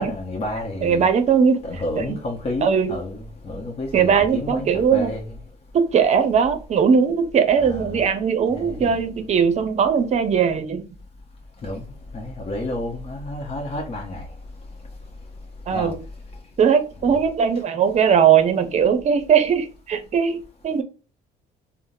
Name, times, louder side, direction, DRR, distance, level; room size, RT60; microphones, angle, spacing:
voice 1, 0.0-1.1 1.7-5.2 7.6-8.0 8.5-9.0 11.6-11.8 12.1-14.2 15.7-15.9 17.0-17.1, left 1 dB, 35° left, 0.9 m, -30 dB
voice 2, 0.8-1.6 2.0-2.1 2.6-3.0 3.9-5.1 5.7-10.9 15.7-16.0 16.6-20.8, right 7 dB, 40° right, 0.6 m, -19 dB
3.5 x 2.1 x 2.7 m
cardioid pair, 110°, 17 cm